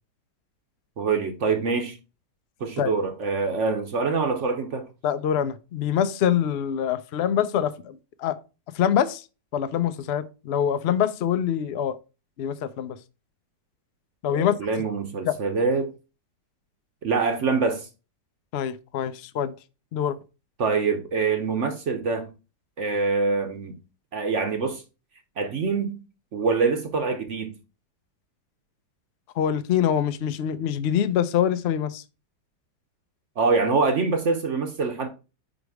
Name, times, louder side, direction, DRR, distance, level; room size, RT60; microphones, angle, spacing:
voice 1, 1.0-2.0 2.6-4.9 14.3-15.9 17.0-17.9 20.6-22.3 22.8-23.8 24.1-24.8 25.4-26.0 26.3-27.6 33.4-35.1, right 4 dB, 55° right, 1.0 m, -25 dB
voice 2, 5.0-8.3 8.7-9.2 9.5-12.0 12.4-13.0 14.2-14.5 15.2-15.3 18.5-19.5 19.9-20.2 29.4-32.0, left 9 dB, 80° left, 0.5 m, -25 dB
5.1 x 5.1 x 4.7 m
omnidirectional pair, 1.9 m